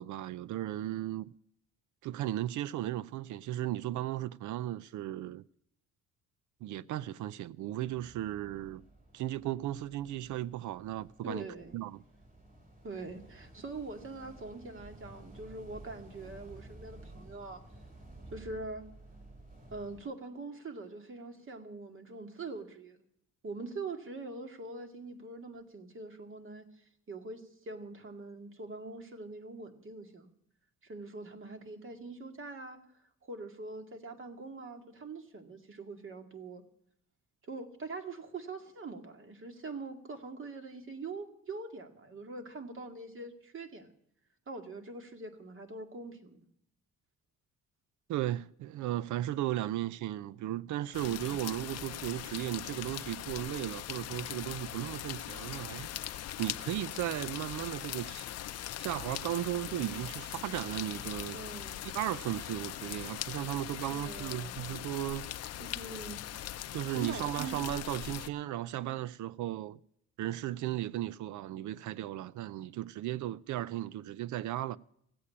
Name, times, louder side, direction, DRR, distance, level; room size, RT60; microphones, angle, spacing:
voice 1, 0.0-1.3 2.0-5.4 6.6-8.8 9.1-11.5 11.7-12.0 48.1-58.3 58.8-61.4 61.9-65.4 66.7-69.8 70.2-74.8, right 14 dB, 75° right, 0.5 m, -36 dB
sound 1, 7.8-20.0, right 2 dB, 25° right, 3.8 m, -53 dB
voice 2, 11.2-11.8 12.8-17.6 18.3-18.9 19.7-23.0 23.4-30.3 30.8-32.8 33.2-36.6 37.4-43.9 44.5-46.5 61.3-61.8 63.9-64.8 65.6-66.2 66.9-67.6, right 3 dB, 45° right, 2.2 m, -43 dB
sound 2, 50.9-68.3, left 12 dB, 55° left, 0.6 m, -41 dB
16.0 x 8.3 x 8.6 m
cardioid pair, 90°, 30 cm